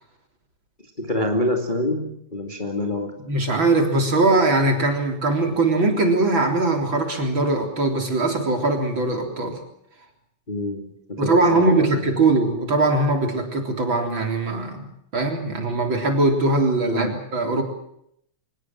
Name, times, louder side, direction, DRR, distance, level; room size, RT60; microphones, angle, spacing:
voice 1, 1.0-3.1 10.5-11.9 16.8-17.1, left 1 dB, 15° left, 3 dB, 2.4 m, -26 dB
voice 2, 3.3-9.6 11.2-17.6, right 2 dB, 40° right, 4 dB, 4.3 m, -21 dB
25.0 x 20.0 x 7.6 m, 0.73 s
omnidirectional pair, 3.3 m